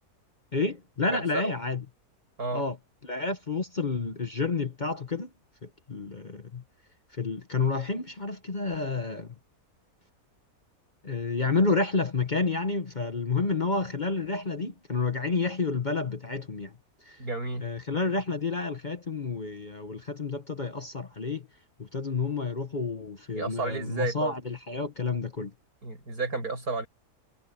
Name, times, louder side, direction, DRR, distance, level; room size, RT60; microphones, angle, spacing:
voice 1, 0.5-1.8 2.5-2.8 3.0-5.3 5.6-6.6 7.2-9.3 11.0-16.7 17.1-17.2 17.6-21.5 21.8-25.5, left 4 dB, 35° left, 1.1 m, -30 dB
voice 2, 1.1-1.5 2.4-2.6 17.2-17.7 23.4-24.3 25.8-26.9, right 3 dB, 75° right, 7.5 m, -32 dB
omnidirectional pair, 1.6 m